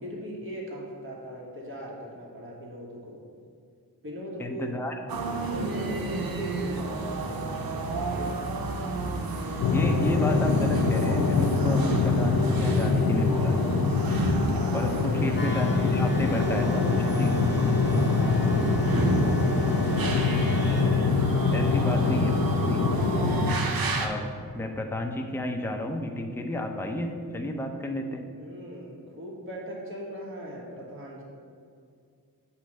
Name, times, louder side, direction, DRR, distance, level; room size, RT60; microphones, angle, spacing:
voice 1, 0.0-3.2 4.0-4.7 5.4-8.5 14.9-15.5 17.8-20.2 28.4-31.2, equal, 35° right, -4 dB, 1.4 m, -39 dB
voice 2, 4.4-4.9 9.7-13.7 14.7-17.3 21.5-22.9 24.0-24.3 24.5-28.3, left 1 dB, 5° left, 3 dB, 0.6 m, -32 dB
sound 1, 5.1-24.1, right 2 dB, 70° right, 0.7 m, -31 dB
sound 2, 9.6-23.5, left 4 dB, 70° left, 0.6 m, -24 dB
sound 3, 15.3-20.8, left 2 dB, 30° left, 0.9 m, -42 dB
8.0 x 2.9 x 6.2 m, 2.3 s
wide cardioid pair, 70°, 36 cm